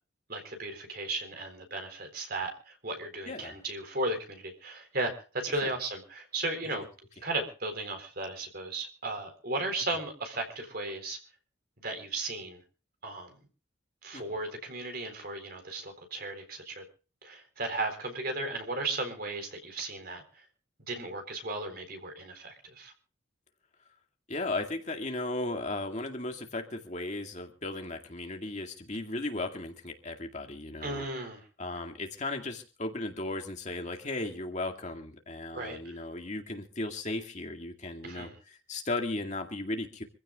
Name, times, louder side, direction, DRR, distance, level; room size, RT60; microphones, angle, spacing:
voice 1, 0.3-6.9 7.2-11.2 11.8-12.6 13.0-13.3 14.0-16.8 17.2-20.2 20.8-22.9 30.8-31.4 35.5-36.0 38.0-38.4, right 2 dB, 50° right, 5 dB, 4.1 m, -35 dB
voice 2, 3.3-3.6 5.6-5.7 14.1-14.2 24.3-31.0 31.6-40.0, left 2 dB, 35° left, 4 dB, 2.1 m, -36 dB
26.0 x 15.5 x 2.4 m, 0.36 s
head